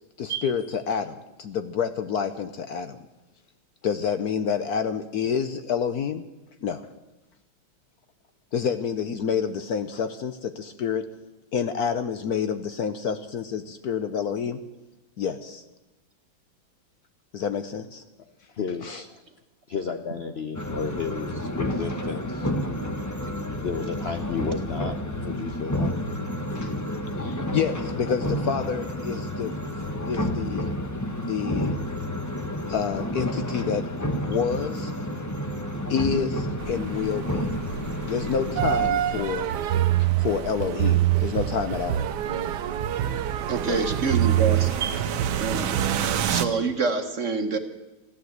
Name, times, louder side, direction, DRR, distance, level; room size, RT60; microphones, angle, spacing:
voice 1, 0.2-3.0 3.8-6.2 6.6-6.9 8.5-11.0 11.5-14.6 15.2-15.6 17.3-18.0 18.8-19.0 26.5-26.7 27.2-29.5 30.0-30.7 31.2-31.8 32.7-33.9 34.3-34.9 35.9-37.5 38.0-39.5 40.0-42.0 44.7-44.8, left 7 dB, 65° left, 10 dB, 1.0 m, -28 dB
voice 2, 18.6-19.2 19.7-22.5 23.6-25.9 43.7-43.8, left 5 dB, 85° left, 6 dB, 0.5 m, -32 dB
sound 1, 20.5-38.9, equal, 20° left, 0.5 m, -30 dB
sound 2, 36.6-46.5, right 8 dB, 85° right, 1.7 m, -32 dB
sound 3, 38.6-46.1, right 12 dB, 65° right, 1.2 m, -25 dB
voice 3, 43.5-45.0 45.4-45.7 46.3-47.6, right 4 dB, 45° right, 7 dB, 1.2 m, -26 dB
15.0 x 12.0 x 8.0 m, 1.0 s
omnidirectional pair, 2.2 m